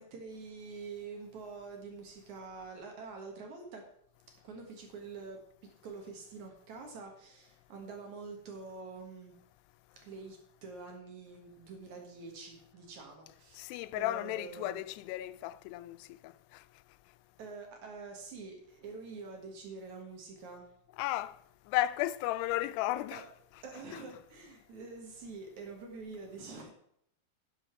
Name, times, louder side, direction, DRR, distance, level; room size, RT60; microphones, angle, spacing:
voice 1, 0.0-3.8 4.4-5.4 5.8-9.3 10.0-13.7 14.0-14.8 17.4-20.7 23.1-23.2 23.6-26.7, right 4 dB, 55° right, 2.4 m, -46 dB
voice 2, 13.5-16.7 21.0-21.4 21.7-23.2, left 15 dB, 90° left, 2.6 m, -34 dB
11.0 x 7.1 x 5.8 m
omnidirectional pair, 4.7 m